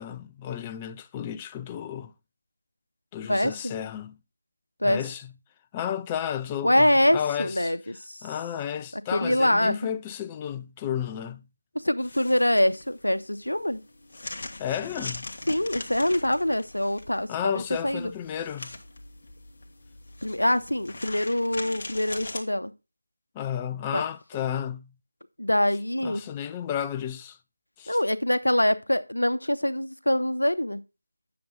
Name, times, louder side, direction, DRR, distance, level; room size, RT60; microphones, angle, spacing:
voice 1, 0.0-2.1 3.1-4.2 4.8-5.3 5.7-7.7 8.2-11.4 14.6-15.3 17.3-18.7 23.3-24.9 26.0-27.4 27.8-28.0, left 9 dB, 15° left, 0.4 m, -32 dB
voice 2, 3.2-3.7 4.8-5.0 6.6-8.3 8.9-9.8 11.7-13.8 15.5-18.1 20.2-22.7 23.9-24.0 25.4-26.3 27.9-30.8, left 1 dB, 85° left, 0.8 m, -24 dB
sound 1, 12.0-22.4, left 2 dB, 45° left, 1.3 m, -41 dB
9.6 x 6.8 x 3.8 m
figure-of-eight pair, 165°, 0 cm